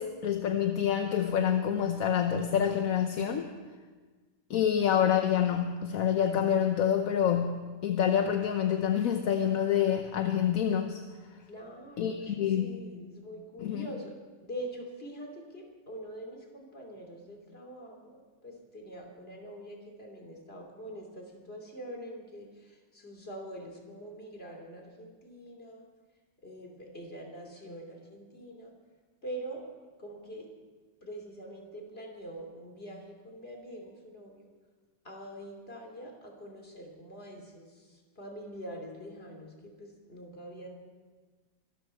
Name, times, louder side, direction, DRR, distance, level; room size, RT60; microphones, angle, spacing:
voice 1, 0.0-3.5 4.5-11.0 12.0-12.8 13.6-13.9, left 9 dB, 60° left, 6 dB, 1.1 m, -27 dB
voice 2, 11.4-14.1 14.4-25.8 26.4-28.7 29.2-29.6 30.0-30.5 31.0-34.5 35.0-40.7, right 1 dB, 35° left, 1 dB, 3.1 m, -44 dB
24.5 x 13.0 x 4.5 m, 1.4 s
omnidirectional pair, 1.9 m